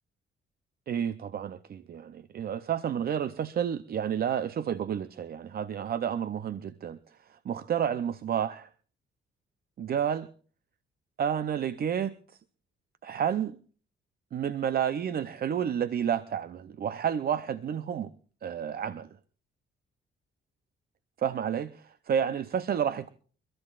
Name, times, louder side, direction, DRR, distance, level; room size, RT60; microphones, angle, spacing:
voice 1, 0.9-8.7 9.8-10.3 11.2-12.4 13.0-13.6 14.3-18.1 18.4-19.2 21.2-23.1, right 8 dB, 50° right, 0.6 m, -30 dB
29.5 x 13.5 x 2.4 m
cardioid pair, 90°, 20 cm